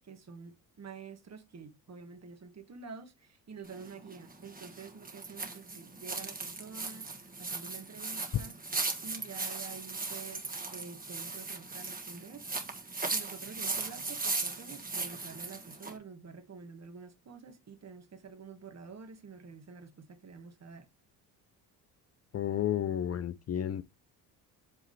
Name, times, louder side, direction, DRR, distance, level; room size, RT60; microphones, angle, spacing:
voice 1, 0.0-7.1 7.4-8.5 9.0-12.4 13.1-20.9, right 5 dB, 35° right, 1.5 m, -48 dB
sound 1, 3.6-16.0, right 3 dB, 20° right, 1.5 m, -38 dB
voice 2, 22.3-23.8, left 10 dB, 35° left, 0.5 m, -32 dB
8.1 x 3.7 x 3.2 m
supercardioid pair, 70°, 43 cm